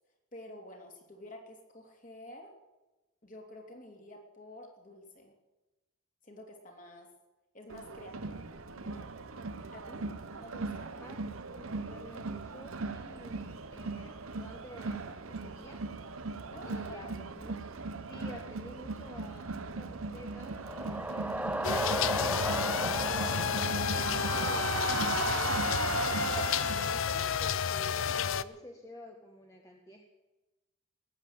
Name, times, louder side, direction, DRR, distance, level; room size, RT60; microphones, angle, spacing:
voice 1, 0.3-2.5 3.2-5.3 6.2-7.1 7.5-8.5 8.8-9.1 9.7-10.1 10.4-10.9 16.5-17.0, left 1 dB, 40° left, 1 dB, 3.0 m, -49 dB
Crowd, 7.7-27.1, right 4 dB, 75° right, 0.9 m, -38 dB
voice 2, 11.5-15.8 16.6-17.6 18.1-20.6 21.2-26.2 26.6-30.1, left 1 dB, 15° left, 2 dB, 1.2 m, -51 dB
sound 1, 20.2-25.1, right 1 dB, 5° right, 0.4 m, -36 dB
sound 2, 21.6-28.4, left 7 dB, 65° left, 0.5 m, -31 dB
19.5 x 8.3 x 8.7 m, 1.1 s
head